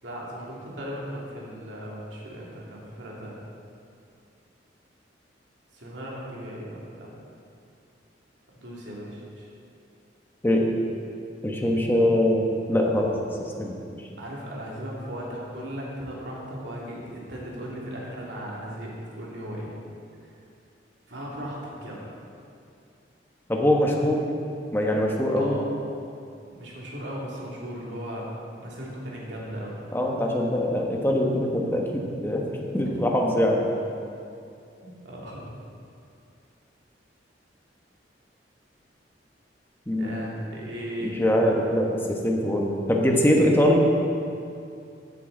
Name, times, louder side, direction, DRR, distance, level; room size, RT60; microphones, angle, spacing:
voice 1, 0.0-3.4 5.7-7.1 8.5-9.5 14.2-19.7 21.1-22.2 25.4-25.7 26.5-28.3 28.6-29.8 34.8-35.5 40.0-41.2, equal, 75° right, -4 dB, 2.5 m, -37 dB
voice 2, 11.4-13.1 13.4-13.8 23.5-24.2 24.7-25.5 29.9-32.4 32.7-33.6 39.9-40.2 41.0-43.8, left 1 dB, 10° left, -1 dB, 1.1 m, -23 dB
14.5 x 7.6 x 3.9 m, 2.5 s
head